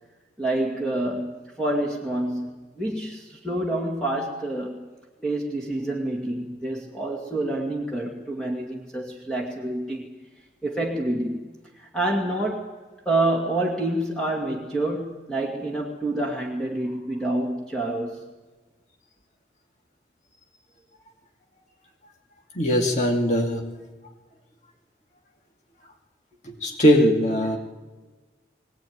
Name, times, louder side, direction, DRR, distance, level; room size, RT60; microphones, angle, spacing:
voice 1, 0.4-4.9 5.2-10.1 10.6-11.5 11.7-12.7 13.1-18.2, right 1 dB, 5° left, -2 dB, 2.2 m, -27 dB
voice 2, 22.6-23.6 26.4-27.6, equal, 40° left, 1 dB, 2.5 m, -20 dB
21.5 x 18.0 x 9.5 m, 1.3 s
head